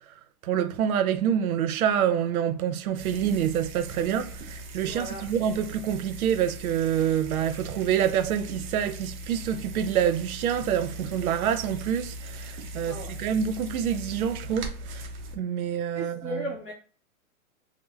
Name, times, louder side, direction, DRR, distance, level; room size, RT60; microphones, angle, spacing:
voice 1, 0.4-15.0 15.3-16.4, right 9 dB, 90° right, 0.5 m, -27 dB
sound 1, 3.0-15.4, right 1 dB, 35° right, 0.5 m, -40 dB
voice 2, 4.8-5.4 12.8-13.2 15.9-16.7, equal, 15° left, 0.4 m, -37 dB
3.1 x 2.0 x 2.2 m
hypercardioid pair, 145°, 42 cm